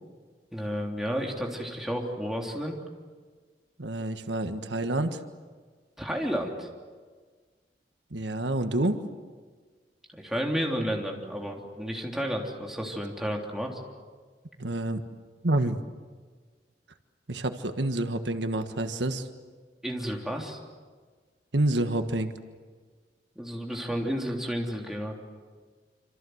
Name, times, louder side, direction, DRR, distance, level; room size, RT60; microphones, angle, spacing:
voice 1, 0.5-2.8 6.0-6.7 10.1-13.8 19.8-20.6 23.3-25.1, equal, ahead, 0 dB, 3.3 m, -31 dB
voice 2, 3.8-5.2 8.1-9.0 14.6-15.0 15.4-15.8 17.3-19.3 21.5-22.3, right 1 dB, 90° right, 8 dB, 1.5 m, -28 dB
27.0 x 27.0 x 8.0 m, 1.5 s
head